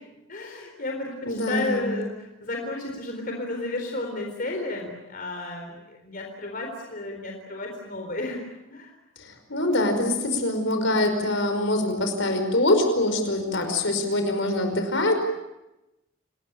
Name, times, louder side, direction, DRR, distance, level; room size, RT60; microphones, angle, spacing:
voice 1, 0.3-8.4 8.7-8.9, left 2 dB, 45° left, 1 dB, 4.1 m, -32 dB
voice 2, 1.2-1.9 9.2-15.2, left 1 dB, 65° left, 6 dB, 5.3 m, -24 dB
28.5 x 21.0 x 8.8 m, 0.94 s
head